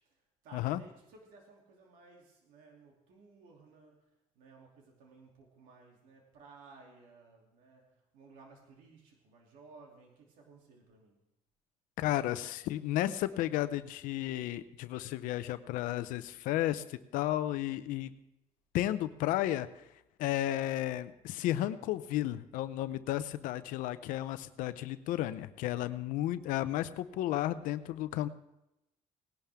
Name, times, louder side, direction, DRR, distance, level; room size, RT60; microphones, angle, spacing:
voice 1, 0.0-11.2, right 3 dB, 85° right, 0 dB, 2.8 m, -58 dB
voice 2, 12.0-18.1 18.7-19.7 20.2-28.3, left 14 dB, 85° left, 13 dB, 0.6 m, -33 dB
18.5 x 11.5 x 3.5 m, 0.88 s
cardioid pair, 115°, 13 cm